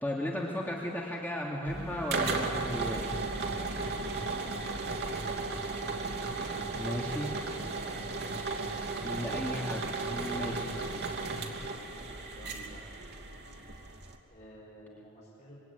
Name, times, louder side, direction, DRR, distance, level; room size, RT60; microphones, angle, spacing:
voice 1, 0.0-3.0 6.7-7.4 9.0-10.7, left 1 dB, 10° left, -3 dB, 2.6 m, -35 dB
sound 1, 1.7-14.2, right 3 dB, 50° right, 2.8 m, -35 dB
voice 2, 4.9-5.7 7.4-7.9 10.5-11.2 12.0-12.9 14.3-15.6, equal, 35° left, -7 dB, 5.7 m, -52 dB
26.0 x 23.5 x 9.6 m, 2.7 s
head